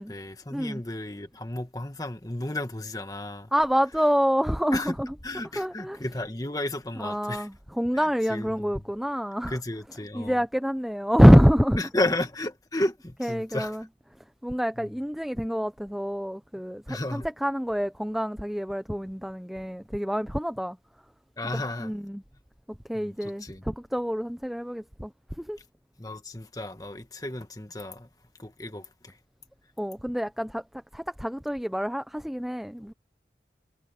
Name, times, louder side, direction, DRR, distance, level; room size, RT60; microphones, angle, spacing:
voice 1, 0.0-3.5 4.7-5.0 5.2-7.5 7.9-8.7 9.5-10.4 11.8-13.8 14.8-14.9 16.9-17.3 21.4-21.9 22.9-23.6 26.0-28.1 28.4-29.2, left 1 dB, 20° left, 1.7 m, -33 dB
voice 2, 3.5-5.1 5.6-6.0 7.0-9.6 10.1-11.8 13.2-13.8 14.4-20.8 21.5-22.2 22.7-25.1 25.4-25.6 29.8-30.6 30.9-32.9, equal, ahead, 0.4 m, -25 dB
head